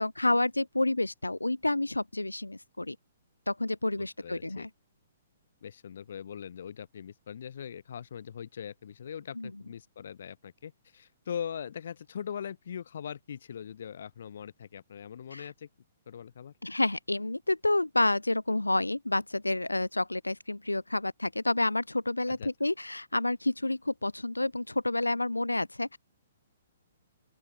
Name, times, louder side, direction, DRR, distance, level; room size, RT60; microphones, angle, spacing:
voice 1, 0.0-3.0 3.5-4.7 9.4-9.5 15.3-15.5 16.6-26.0, left 2 dB, 85° left, 4.5 m, -29 dB
voice 2, 4.0-4.7 5.6-15.7 16.1-16.5 22.3-22.5, left 8 dB, 60° left, 3.2 m, -41 dB
open air
figure-of-eight pair, 120°, 0 cm